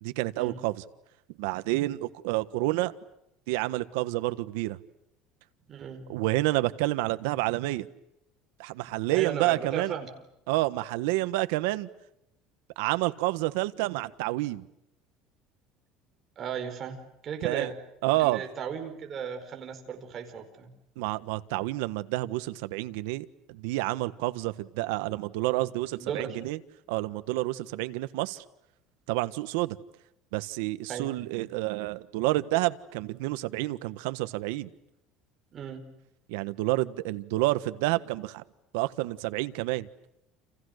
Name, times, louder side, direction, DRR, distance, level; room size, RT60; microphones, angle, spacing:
voice 1, 0.0-0.8 1.4-2.9 3.5-4.8 6.1-7.9 8.6-9.9 10.5-11.9 12.8-14.6 17.4-17.7 18.0-18.4 21.0-26.6 26.9-28.4 29.1-29.8 30.3-34.7 36.3-38.4 38.7-39.9, right 19 dB, 90° right, 12 dB, 1.4 m, -29 dB
voice 2, 5.7-6.0 9.1-10.1 16.4-17.8 18.2-20.7 25.9-26.4 30.9-31.1 35.5-35.8, right 7 dB, 30° right, 4 dB, 4.7 m, -36 dB
30.0 x 29.5 x 6.6 m, 0.81 s
cardioid pair, 170°, 0 cm